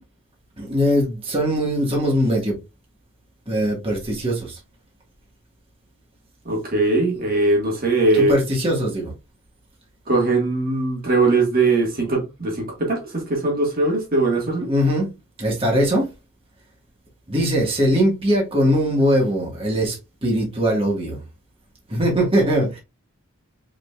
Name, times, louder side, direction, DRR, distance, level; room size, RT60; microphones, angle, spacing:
voice 1, 0.6-2.5 3.5-4.6 8.2-9.1 14.7-15.1 15.4-16.1 17.3-21.2 21.9-22.8, equal, 25° right, 1.7 m, -21 dB
voice 2, 6.5-8.3 10.1-14.7, right 2 dB, 45° right, 1.7 m, -20 dB
5.1 x 4.1 x 2.4 m
head